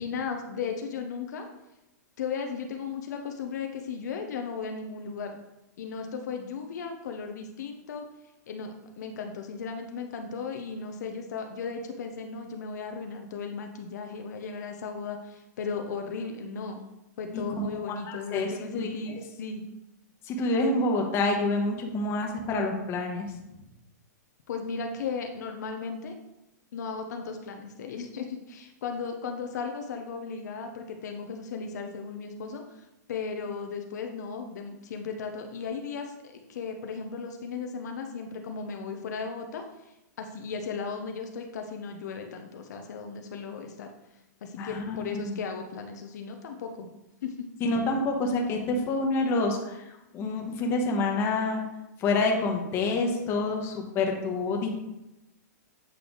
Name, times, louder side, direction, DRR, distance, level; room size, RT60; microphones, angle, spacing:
voice 1, 0.0-1.5 2.2-5.4 5.8-8.0 8.5-16.9 17.2-19.6 24.5-26.1 26.7-43.9 44.4-46.9 47.2-47.5, left 5 dB, 70° left, 4 dB, 0.7 m, -36 dB
voice 2, 17.8-19.2 20.2-23.3 44.6-45.0 45.2-45.4 47.6-49.8 50.1-51.6 52.0-54.7, left 2 dB, 25° left, 1 dB, 1.1 m, -27 dB
8.0 x 3.3 x 3.9 m, 0.92 s
hypercardioid pair, 150°, 10 cm